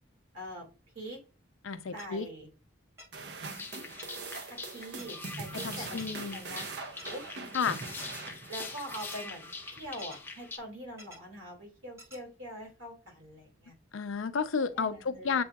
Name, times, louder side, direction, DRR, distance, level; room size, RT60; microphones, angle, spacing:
voice 1, 0.3-0.7 0.9-1.2 1.9-2.5 4.5-6.0 6.3-7.2 8.5-13.7 14.7-15.4, equal, 75° right, 2.4 m, -44 dB
voice 2, 1.6-2.3 5.6-6.4 7.5-7.8 13.9-15.4, left 5 dB, 90° left, 0.5 m, -31 dB
sound 1, 2.0-2.1 3.0-3.1 4.0-4.1 5.0-5.1 6.0-6.1 7.0-7.1 8.0-8.1 9.0-9.2 10.0-10.2 11.0-11.2 12.0-12.2, equal, 15° right, 1.0 m, -49 dB
sound 2, 3.1-9.7, right 3 dB, 55° right, 0.6 m, -43 dB
sound 3, 3.4-10.6, left 3 dB, 10° left, 0.4 m, -44 dB
7.7 x 2.7 x 2.3 m
head